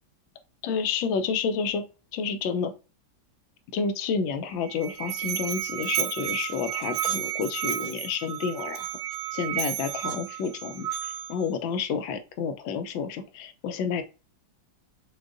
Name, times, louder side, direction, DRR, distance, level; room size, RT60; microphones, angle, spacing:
voice 1, 0.6-1.9 2.1-2.7 3.7-8.9 9.3-14.0, left 6 dB, 90° left, 9 dB, 1.4 m, -30 dB
Musical instrument, 4.5-11.5, right 11 dB, 80° right, 1.2 m, -32 dB
6.3 x 2.3 x 2.5 m, 0.31 s
omnidirectional pair, 2.1 m